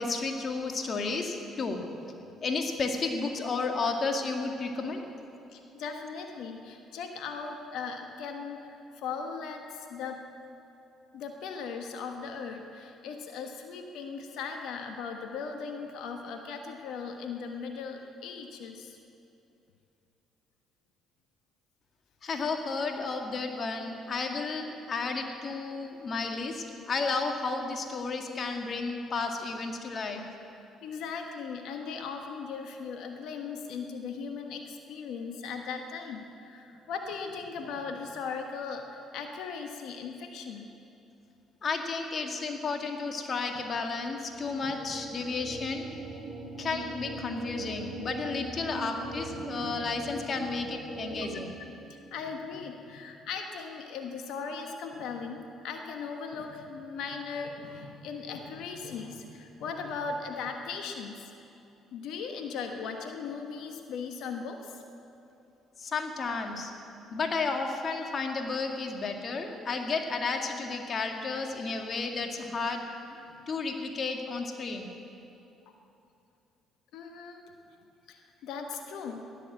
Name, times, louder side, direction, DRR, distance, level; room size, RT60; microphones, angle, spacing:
voice 1, 0.0-1.8 2.4-5.0 22.2-30.2 41.6-45.9 46.6-51.5 65.8-66.7 67.1-72.8 73.5-74.9, left 4 dB, 45° left, 3 dB, 2.0 m, -32 dB
voice 2, 5.5-10.2 11.1-19.0 30.8-40.7 44.6-44.7 49.3-49.8 51.3-61.3 61.9-64.8 76.9-77.5 78.1-79.2, left 5 dB, 70° left, 4 dB, 1.2 m, -38 dB
sound 1, 44.1-51.4, right 2 dB, 60° right, 3.4 m, -40 dB
15.0 x 11.0 x 7.5 m, 2.8 s
hypercardioid pair, 60°, 0 cm